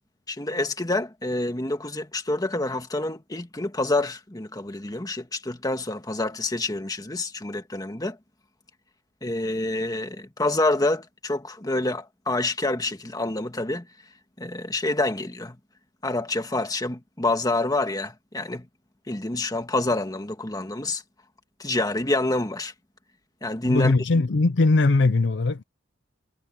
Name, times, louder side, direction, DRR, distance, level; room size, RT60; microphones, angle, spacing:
voice 1, 0.3-8.2 9.2-13.9 14.4-15.6 16.0-18.7 19.1-21.0 21.6-22.7 23.4-23.9, left 2 dB, 20° left, 1.7 m, -27 dB
voice 2, 23.7-25.6, left 3 dB, 65° left, 0.6 m, -20 dB
head